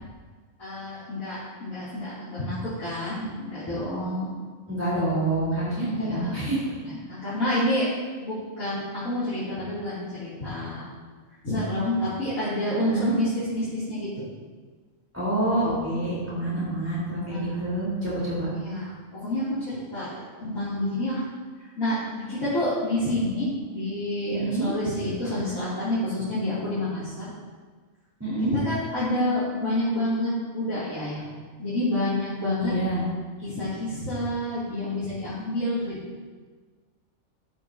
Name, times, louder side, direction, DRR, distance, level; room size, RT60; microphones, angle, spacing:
voice 1, 0.6-4.3 5.9-6.4 6.8-7.9 8.2-10.9 11.4-14.2 16.6-16.8 17.3-17.6 18.5-21.2 21.6-27.3 28.5-31.3 31.6-32.7 33.4-36.0, left 1 dB, 80° left, -13 dB, 3.8 m, -28 dB
voice 2, 4.7-6.7 12.8-13.2 15.1-18.5 24.3-24.7 28.2-28.6 32.6-33.1, right 1 dB, 10° right, -9 dB, 4.3 m, -27 dB
14.0 x 12.5 x 2.9 m, 1.5 s
omnidirectional pair, 1.4 m